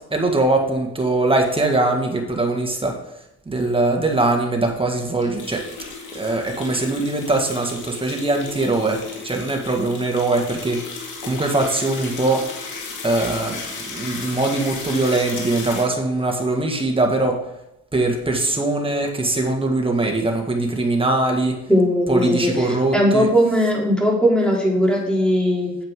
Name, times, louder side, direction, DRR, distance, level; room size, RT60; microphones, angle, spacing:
voice 1, 0.0-3.1 3.5-5.7 6.1-12.5 13.0-17.5 17.9-21.7 22.1-23.3, right 2 dB, 15° right, 2 dB, 1.9 m, -22 dB
sound 1, 5.2-15.8, left 4 dB, 85° left, 2.3 m, -34 dB
voice 2, 21.7-22.5 22.9-25.8, equal, 5° left, -2 dB, 3.2 m, -18 dB
9.2 x 7.5 x 3.8 m, 0.87 s
cardioid pair, 90°, 30 cm